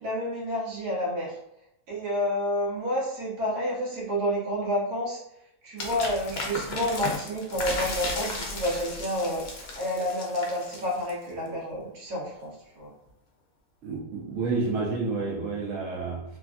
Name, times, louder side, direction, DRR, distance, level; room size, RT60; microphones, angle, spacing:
voice 1, 0.0-1.3 1.9-5.2 5.6-9.4 9.7-12.9, equal, 90° right, -4 dB, 1.5 m, -29 dB
sound 1, 5.8-11.3, left 2 dB, 60° left, 0.7 m, -35 dB
voice 2, 13.8-16.4, right 3 dB, 65° right, -4 dB, 0.9 m, -30 dB
3.3 x 2.4 x 2.4 m, 0.81 s
omnidirectional pair, 1.6 m